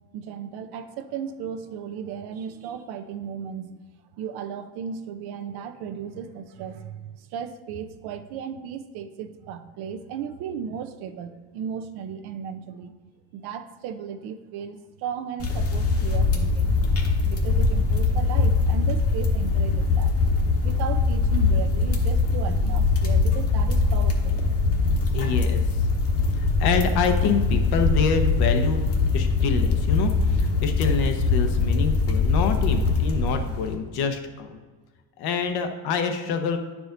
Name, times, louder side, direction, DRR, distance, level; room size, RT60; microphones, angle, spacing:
voice 1, 0.1-3.8 4.2-12.9 13.3-16.8 17.2-20.1 20.6-24.4, right 7 dB, 70° right, 9 dB, 0.7 m, -35 dB
sound 1, 15.4-33.7, left 3 dB, 35° left, 1.1 m, -22 dB
voice 2, 25.1-25.6 26.6-28.8 29.1-34.6 35.2-36.6, left 6 dB, 65° left, 5 dB, 1.0 m, -26 dB
9.4 x 4.9 x 3.8 m, 1.4 s
cardioid pair, 120°, 40 cm